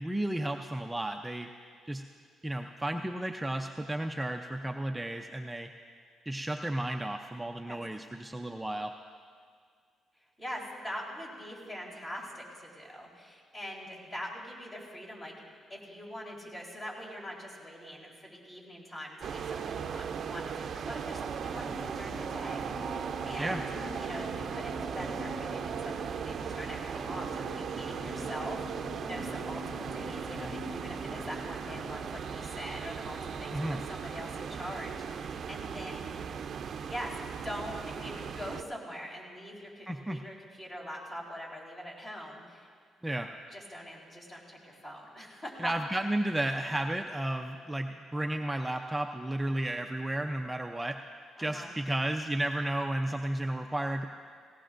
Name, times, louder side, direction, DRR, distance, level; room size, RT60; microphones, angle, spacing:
voice 1, 0.0-1.5 1.9-2.0 2.4-5.7 6.3-8.9 23.4-23.6 33.5-33.8 39.9-40.2 43.0-43.3 45.6-51.0 51.4-54.1, right 1 dB, 10° right, 4 dB, 0.5 m, -33 dB
voice 2, 10.2-15.3 15.7-23.7 24.0-36.1 36.9-37.1 37.4-42.7 43.5-46.1 51.4-51.7, equal, 30° left, -4 dB, 4.2 m, -43 dB
sound 1, 19.2-38.6, right 7 dB, 60° right, 0.5 m, -38 dB
sound 2, 21.4-34.8, equal, 15° left, 1.8 m, -45 dB
18.5 x 17.5 x 2.6 m, 2.1 s
cardioid pair, 90°, 0 cm